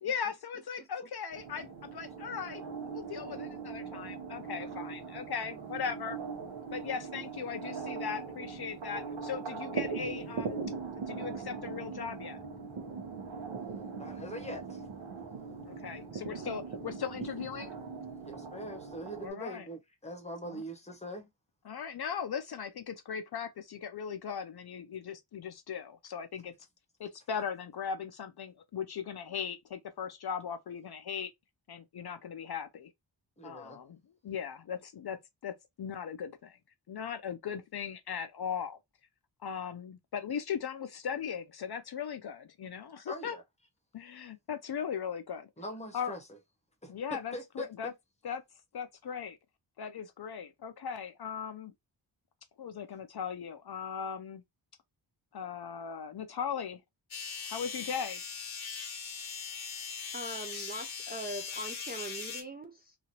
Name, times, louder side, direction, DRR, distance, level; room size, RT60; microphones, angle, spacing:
voice 1, 0.0-6.2 6.7-12.4 15.6-17.7 19.2-19.7 20.4-20.6 21.6-26.5 27.0-31.3 31.7-32.9 33.4-36.6 36.9-38.8 39.4-43.4 43.9-45.5 45.9-46.2 46.9-47.9 48.2-48.4 48.7-49.4 49.8-51.7 52.6-54.4 55.3-56.8 57.5-58.2, left 7 dB, 55° left, 0.5 m, -38 dB
sound 1, 1.3-19.3, right 5 dB, 80° right, 1.0 m, -40 dB
voice 2, 14.0-14.8 18.2-21.3 33.4-33.8 43.1-43.4 45.6-46.2 46.8-47.7, equal, 15° left, 0.8 m, -42 dB
sound 2, 57.1-62.4, left 6 dB, 85° left, 1.1 m, -40 dB
voice 3, 60.1-62.9, right 1 dB, 25° right, 0.3 m, -41 dB
2.9 x 2.4 x 2.8 m
wide cardioid pair, 120°, 46 cm